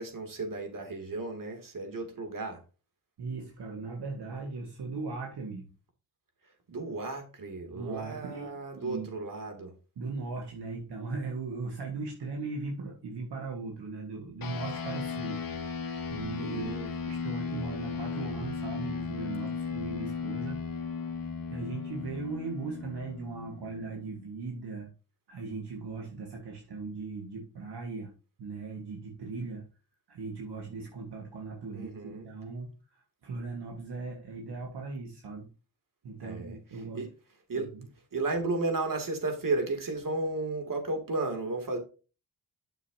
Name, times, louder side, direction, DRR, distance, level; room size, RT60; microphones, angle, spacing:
voice 1, 0.0-2.6 6.7-9.7 16.5-16.9 31.7-32.3 36.2-36.6 36.9-37.1 37.5-37.7 38.1-41.8, right 3 dB, 55° right, 2.7 m, -33 dB
voice 2, 3.2-5.7 7.7-8.5 8.7-9.1 9.9-15.8 16.1-16.7 17.0-20.6 21.2-24.9 25.3-28.1 28.4-29.7 30.1-35.5 36.0-37.0 37.5-37.9, right 3 dB, 75° right, 1.8 m, -38 dB
sound 1, 14.4-24.1, left 5 dB, 55° left, 1.4 m, -36 dB
9.6 x 6.7 x 2.8 m
cardioid pair, 65°, 40 cm